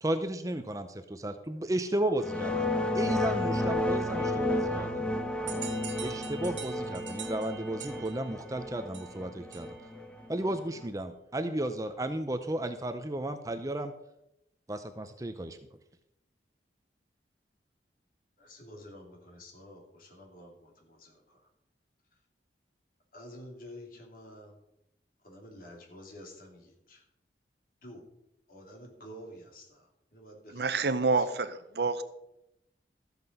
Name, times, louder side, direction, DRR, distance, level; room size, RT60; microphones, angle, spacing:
voice 1, 0.0-2.7 2.9-5.0 6.0-9.7 10.3-13.9 14.7-15.6, right 1 dB, 20° right, 0.6 m, -33 dB
sound 1, 2.2-10.8, left 1 dB, 5° left, 0.9 m, -32 dB
sound 2, 5.5-10.0, right 9 dB, 85° right, 2.1 m, -45 dB
voice 2, 18.4-21.5 23.1-24.6 25.2-27.1 27.8-28.1 28.5-30.7 31.0-31.3, equal, 50° left, 3.1 m, -50 dB
voice 3, 30.5-32.0, right 4 dB, 65° right, 0.8 m, -28 dB
13.5 x 8.1 x 5.4 m
head